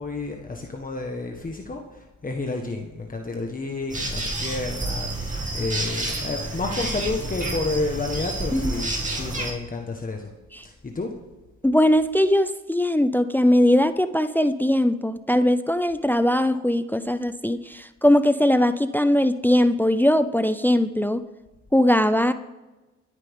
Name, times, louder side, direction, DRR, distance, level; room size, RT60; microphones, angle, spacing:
voice 1, 0.0-10.3 10.6-11.1, left 3 dB, 30° left, 2 dB, 1.5 m, -30 dB
sound 1, 3.9-9.5, right 2 dB, 25° right, 2.6 m, -29 dB
voice 2, 11.6-21.2 21.7-22.3, left 1 dB, 5° left, 12 dB, 0.6 m, -20 dB
24.0 x 9.9 x 3.7 m, 1.1 s
cardioid pair, 90°, 30 cm